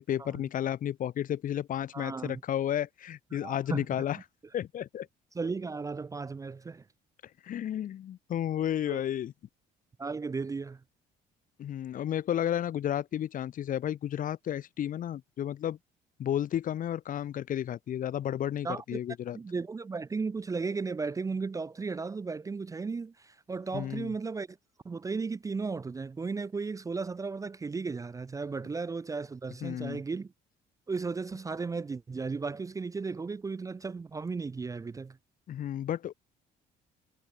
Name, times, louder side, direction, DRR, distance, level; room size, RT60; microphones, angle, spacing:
voice 1, 0.0-4.2 4.5-5.1 7.4-9.3 11.6-15.8 16.2-19.4 23.7-24.1 29.6-30.0 35.5-36.1, left 10 dB, 55° left, 1.3 m, -32 dB
voice 2, 1.9-2.4 3.4-3.9 4.1-4.2 5.3-6.8 8.8-9.0 10.0-10.8 18.6-19.0 19.3-24.6 24.8-30.3 30.9-35.2, right 4 dB, 20° right, 0.5 m, -35 dB
cardioid pair, 110°, 17 cm